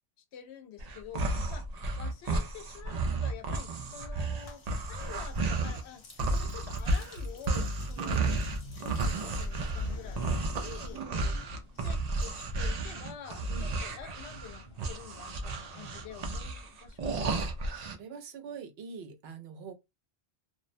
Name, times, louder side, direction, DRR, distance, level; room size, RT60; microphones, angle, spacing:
voice 1, 0.3-1.7 2.0-8.4 8.8-11.1 11.7-17.5, left 8 dB, 85° left, 0.9 m, -48 dB
sound 1, 0.8-5.8 6.2-18.0, right 2 dB, 55° right, 0.5 m, -32 dB
sound 2, 4.4-11.3 11.5-13.9, left 4 dB, 40° left, 0.6 m, -55 dB
sound 3, 7.2-16.7, left 1 dB, 65° left, 1.0 m, -48 dB
voice 2, 8.0-8.3 10.9-11.5 13.5-13.8 17.3-17.5 17.9-19.7, right 5 dB, 75° right, 0.8 m, -44 dB
2.4 x 2.0 x 2.5 m
omnidirectional pair, 1.1 m